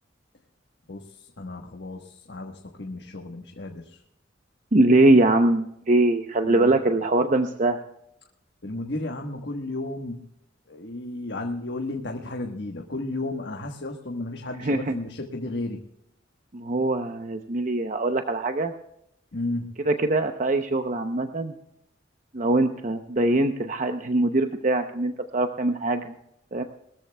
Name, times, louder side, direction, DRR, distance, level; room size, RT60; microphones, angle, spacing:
voice 1, 0.9-4.0 6.4-6.8 8.6-10.2 10.7-15.8 19.3-19.7, left 2 dB, 60° left, 2 dB, 1.3 m, -33 dB
voice 2, 4.7-7.8 14.6-14.9 16.5-18.7 19.8-21.5 22.3-26.1 26.5-26.6, right 2 dB, 40° right, 6 dB, 0.7 m, -22 dB
21.5 x 14.0 x 2.3 m, 0.78 s
head